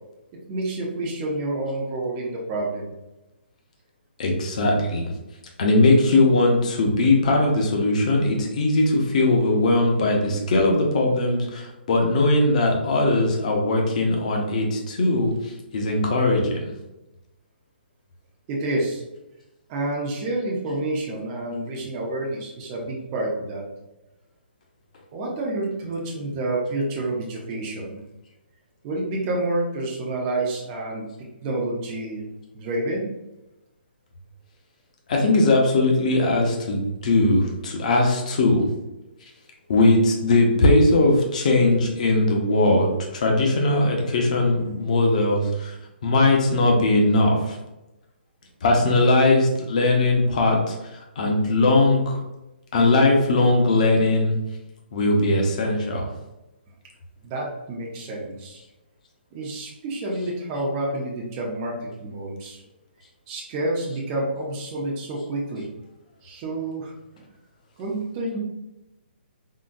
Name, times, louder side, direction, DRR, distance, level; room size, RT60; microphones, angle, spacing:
voice 1, 0.5-2.9 18.5-19.0 19.7-23.6 25.1-28.0 28.8-31.1 31.4-32.2 32.5-33.1 57.2-58.6 59.3-62.6 63.3-65.7 66.2-67.2 67.8-68.4, right 2 dB, 20° right, -3 dB, 0.4 m, -28 dB
voice 2, 4.2-5.1 5.6-16.7 35.1-38.7 39.7-45.8 46.0-47.6 48.6-50.8 51.2-52.2 52.7-54.3 54.9-56.1, left 2 dB, 40° left, 1 dB, 0.6 m, -20 dB
3.8 x 2.1 x 2.5 m, 0.96 s
hypercardioid pair, 170°, 6 cm